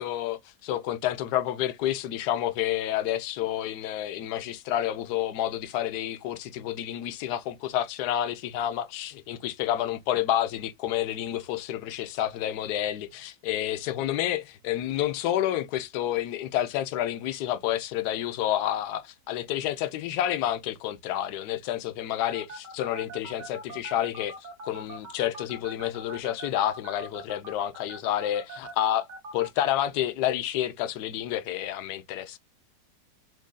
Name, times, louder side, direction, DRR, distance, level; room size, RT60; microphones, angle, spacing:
voice 1, 0.0-24.3 24.6-29.0 29.3-32.4, left 12 dB, 70° left, 1.1 m, -29 dB
sound 1, 22.3-29.5, right 2 dB, 70° right, 1.7 m, -41 dB
7.3 x 2.6 x 2.2 m
omnidirectional pair, 1.9 m